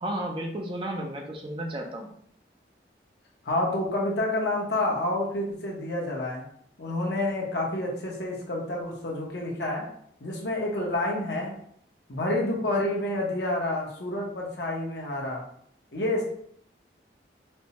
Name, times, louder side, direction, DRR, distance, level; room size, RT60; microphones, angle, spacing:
voice 1, 0.0-2.1, right 1 dB, 30° right, 2 dB, 0.4 m, -33 dB
voice 2, 3.4-6.5 6.8-9.9 10.2-11.5 12.1-15.5 15.9-16.2, left 1 dB, 70° left, -2 dB, 0.9 m, -28 dB
4.3 x 2.2 x 2.9 m, 0.66 s
head